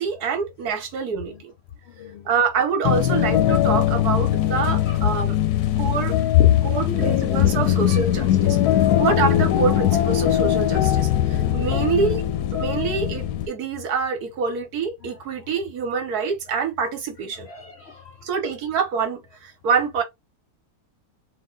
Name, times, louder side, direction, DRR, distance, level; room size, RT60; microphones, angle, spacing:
voice 1, 0.0-1.5 2.2-5.4 5.8-6.2 6.6-8.6 9.0-12.2 12.6-17.5 18.2-20.0, right 6 dB, 75° right, 1.5 m, -26 dB
voice 2, 1.9-2.3 3.5-3.6 4.8-5.0 5.7-8.3 8.7-9.0 10.8-12.1 15.0-15.1 17.3-18.3, left 12 dB, 65° left, 0.7 m, -26 dB
sound 1, 2.8-13.5, left 11 dB, 85° left, 1.1 m, -21 dB
4.1 x 2.4 x 3.7 m
omnidirectional pair, 1.7 m